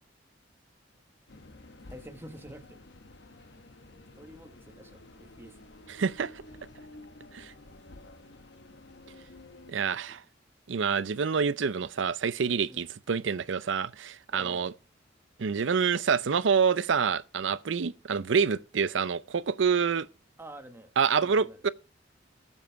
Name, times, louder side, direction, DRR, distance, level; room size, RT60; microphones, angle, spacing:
sound 1, 1.3-9.7, left 2 dB, 65° left, 1.2 m, -51 dB
voice 1, 1.9-2.8 4.2-5.7 9.9-10.2 12.7-12.9 14.3-14.8 20.4-21.6, right 1 dB, 15° right, 1.3 m, -48 dB
voice 2, 5.9-6.3 7.3-7.5 9.7-10.2 10.7-14.7 15.4-20.1 21.0-21.7, right 6 dB, 85° right, 0.5 m, -27 dB
17.5 x 7.2 x 4.5 m
head